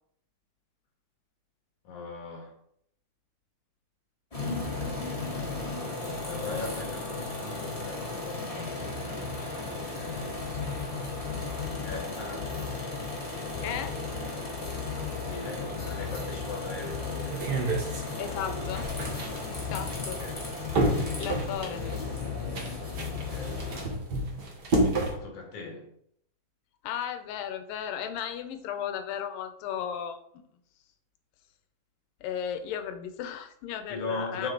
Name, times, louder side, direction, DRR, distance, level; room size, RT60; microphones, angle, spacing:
voice 1, 1.8-2.5 5.4-8.8 9.1-9.4 10.0-10.4 11.3-12.7 15.2-17.4 20.2-20.5 22.9-23.7 25.1-25.9 33.9-34.5, left 3 dB, 65° left, 0 dB, 3.1 m, -40 dB
sound 1, 4.3-23.9, left 4 dB, 30° left, 0.6 m, -34 dB
voice 2, 13.6-14.0 18.2-18.9 19.5-20.2 21.2-21.9 26.8-30.4 32.2-34.5, left 9 dB, 85° left, 8 dB, 2.5 m, -35 dB
sound 2, 17.3-25.1, right 2 dB, 65° right, 1.0 m, -31 dB
7.5 x 4.7 x 3.9 m, 0.68 s
omnidirectional pair, 3.9 m